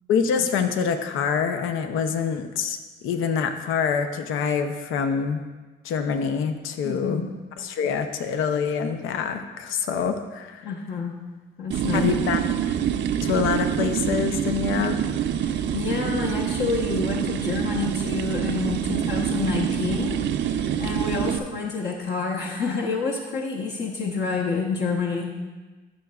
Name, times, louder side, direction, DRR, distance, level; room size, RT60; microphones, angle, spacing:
voice 1, 0.1-2.8 3.0-5.4 5.8-7.3 7.6-10.7 11.9-12.4 13.2-15.0, left 6 dB, 90° left, 7 dB, 0.7 m, -25 dB
voice 2, 6.8-7.3 10.6-11.1 11.6-12.1 15.4-25.3, left 4 dB, 60° left, -2 dB, 1.0 m, -28 dB
sound 1, 11.7-21.4, right 9 dB, 70° right, 0.5 m, -26 dB
12.5 x 6.6 x 2.4 m, 1.3 s
cardioid pair, 90°, 20 cm